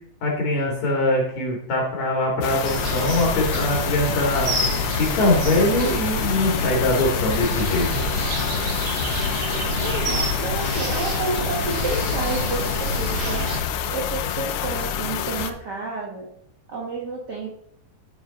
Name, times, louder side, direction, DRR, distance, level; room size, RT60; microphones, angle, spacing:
voice 1, 0.2-4.5 4.9-8.0, left 2 dB, 60° left, -1 dB, 3.1 m, -22 dB
sound 1, 2.4-15.5, left 9 dB, 75° left, 1.8 m, -28 dB
sound 2, 2.6-13.6, right 1 dB, 55° right, 2.9 m, -27 dB
voice 2, 9.8-13.5 13.9-16.3 16.7-17.6, right 3 dB, 80° right, -2 dB, 0.9 m, -30 dB
13.0 x 6.2 x 4.0 m, 0.74 s
omnidirectional pair, 3.8 m